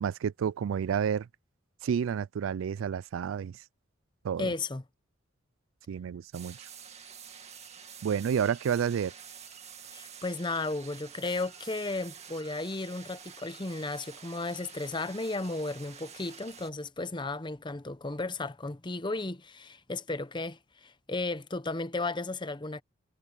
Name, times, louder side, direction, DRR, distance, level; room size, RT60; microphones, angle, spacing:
voice 1, 0.0-1.3 1.8-3.6 4.2-4.5 5.9-6.7 8.0-9.1, right 7 dB, 75° right, 0.3 m, -30 dB
voice 2, 4.4-4.8 9.9-22.8, left 2 dB, 25° left, 0.7 m, -34 dB
sound 1, 6.3-16.7, right 7 dB, 35° right, 2.2 m, -49 dB
head